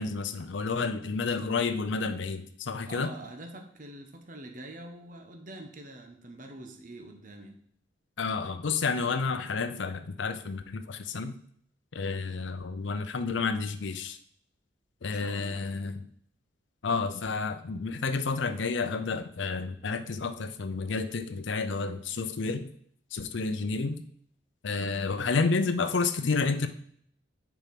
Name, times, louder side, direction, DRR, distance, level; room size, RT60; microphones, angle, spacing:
voice 1, 0.0-3.1 8.2-11.4 11.9-14.2 15.0-16.1 16.8-22.7 23.1-24.0 24.6-26.7, left 4 dB, 75° left, 9 dB, 0.6 m, -30 dB
voice 2, 2.8-7.6 15.0-15.7, right 1 dB, 45° right, 4 dB, 1.0 m, -45 dB
6.9 x 4.8 x 5.9 m, 0.64 s
head